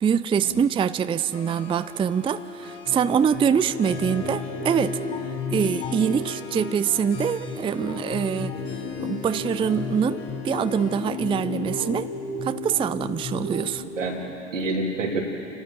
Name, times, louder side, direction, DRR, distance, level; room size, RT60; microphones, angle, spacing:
voice 1, 0.0-5.0 5.5-8.6 9.0-12.1 12.4-13.8, right 7 dB, 15° right, 13 dB, 0.4 m, -24 dB
Harp, 1.3-13.5, left 5 dB, 70° left, 3.2 m, -40 dB
sound 1, 2.9-13.9, left 4 dB, 45° left, 2.6 m, -33 dB
voice 2, 13.6-15.2, right 2 dB, 85° right, -1 dB, 3.2 m, -29 dB
29.5 x 12.5 x 7.6 m, 2.9 s
figure-of-eight pair, 75°, 37 cm